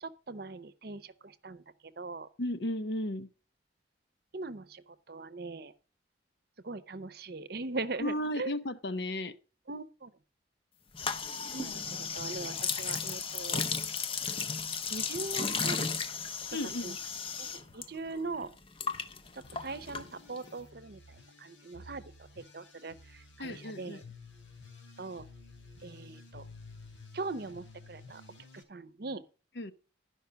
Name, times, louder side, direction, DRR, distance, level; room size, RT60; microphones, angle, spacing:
voice 1, 0.0-1.6 2.0-2.3 4.3-5.7 6.6-8.5 9.7-10.1 11.5-11.8 12.1-13.6 14.9-15.9 16.8-16.9 17.4-17.5 17.7-18.5 19.3-21.0 21.4-22.0 22.4-24.0 25.0-25.2 25.8-26.4 27.1-28.2 28.5-29.2, right 3 dB, 55° right, 0.7 m, -40 dB
voice 2, 2.4-3.3 8.0-9.3 16.5-17.0 23.4-24.0 29.6-29.7, left 1 dB, 65° left, 0.8 m, -34 dB
sound 1, 10.9-17.9 18.1-20.5, left 5 dB, 30° left, 0.6 m, -35 dB
sound 2, 19.4-28.6, left 3 dB, 90° left, 3.0 m, -53 dB
12.0 x 5.4 x 6.2 m
head